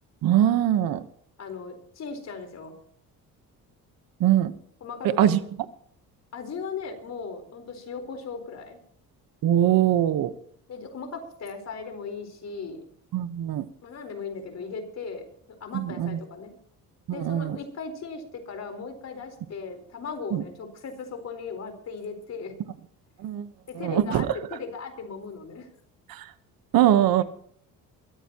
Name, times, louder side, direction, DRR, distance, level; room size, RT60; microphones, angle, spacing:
voice 1, 0.2-1.1 4.2-4.5 5.0-5.4 9.4-10.3 13.1-13.7 15.7-16.2 17.1-17.6 20.3-20.4 23.2-23.5 23.7-24.3 26.1-26.3 26.7-27.2, right 11 dB, 70° right, 13 dB, 1.2 m, -22 dB
voice 2, 1.4-2.8 4.8-5.3 6.3-8.8 10.7-12.8 13.8-15.2 15.6-16.5 17.1-22.5 23.7-25.7, left 5 dB, 45° left, 6 dB, 4.4 m, -37 dB
22.5 x 14.5 x 3.0 m, 0.64 s
cardioid pair, 125°, 36 cm